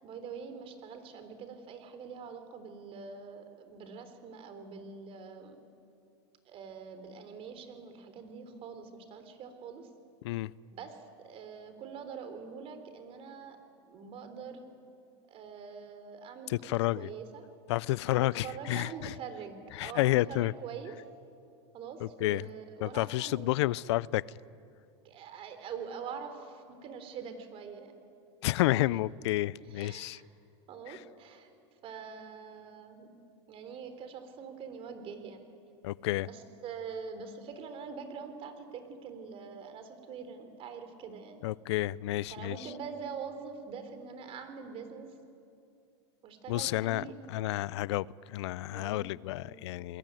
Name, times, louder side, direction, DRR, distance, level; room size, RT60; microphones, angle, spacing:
voice 1, 0.0-5.6 6.5-9.9 10.7-13.6 13.8-14.6 15.3-17.4 18.1-21.0 21.7-23.6 25.0-27.9 28.8-29.0 29.7-30.2 30.7-31.5 31.8-33.1 33.5-35.4 36.2-41.4 42.3-45.1 46.2-47.1 48.7-49.0 49.3-49.6, right 6 dB, 40° right, 8 dB, 3.9 m, -44 dB
voice 2, 16.5-17.1 17.7-19.1 19.7-20.5 22.0-22.4 22.8-24.2 28.4-30.2 30.9-31.0 35.8-36.3 41.4-42.6 46.5-50.0, left 17 dB, 75° left, 22 dB, 0.6 m, -30 dB
28.5 x 21.5 x 9.2 m, 2.6 s
supercardioid pair, 120°, 15 cm